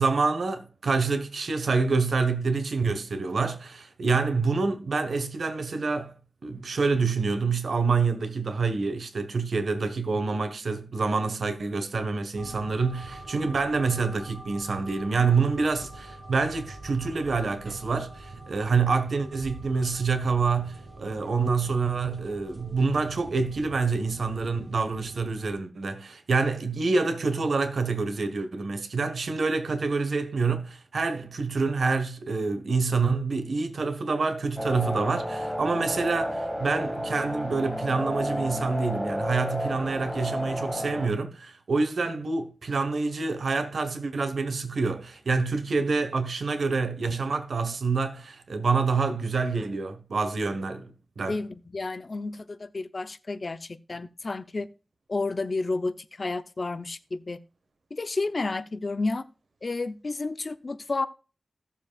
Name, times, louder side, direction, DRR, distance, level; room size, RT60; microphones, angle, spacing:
voice 1, 0.0-6.1 6.4-51.4, right 4 dB, 80° right, 1.4 m, -27 dB
sound 1, 12.4-25.5, right 2 dB, 40° right, 2.2 m, -44 dB
sound 2, 34.6-41.1, equal, ahead, 1.9 m, -31 dB
voice 2, 51.3-54.7 55.1-57.4 57.9-59.3 59.6-61.1, left 3 dB, 45° left, 0.7 m, -31 dB
16.0 x 7.2 x 2.4 m
wide cardioid pair, 115°, 0 cm